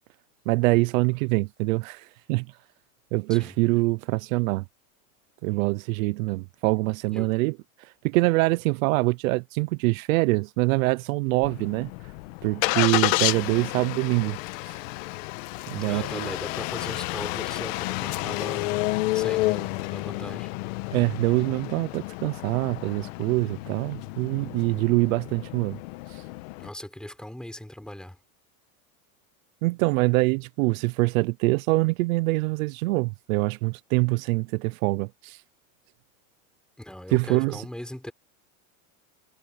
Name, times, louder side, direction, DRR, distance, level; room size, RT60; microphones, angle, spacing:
voice 1, 0.5-2.5 3.1-4.7 5.4-11.9 12.4-14.4 14.6-14.8 15.7-16.3 20.9-25.8 26.1-26.2 29.6-35.4 37.1-37.6, right 23 dB, 75° right, 0.7 m, -24 dB
Engine starting, 11.4-26.7, left 20 dB, 65° left, 1.3 m, -30 dB
voice 2, 15.8-18.8 19.1-20.5 26.6-28.2 36.8-38.1, left 1 dB, ahead, 4.0 m, -39 dB
supercardioid pair, 165°, 41 cm